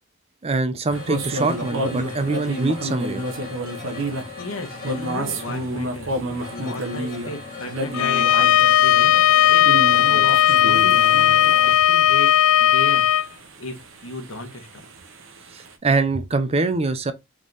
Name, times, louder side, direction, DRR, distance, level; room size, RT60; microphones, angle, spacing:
voice 1, 0.4-3.2 15.5-17.1, right 3 dB, 30° right, 0.4 m, -23 dB
sound 1, 0.9-11.7, left 4 dB, 40° left, 1.3 m, -38 dB
sound 2, 0.9-15.7, right 1 dB, 65° right, 0.8 m, -31 dB
voice 2, 4.4-12.3 12.6-13.0 13.6-14.9, left 2 dB, 70° left, 1.3 m, -35 dB
Bowed string instrument, 7.9-13.3, left 11 dB, 85° left, 0.3 m, -16 dB
3.6 x 3.1 x 3.9 m
head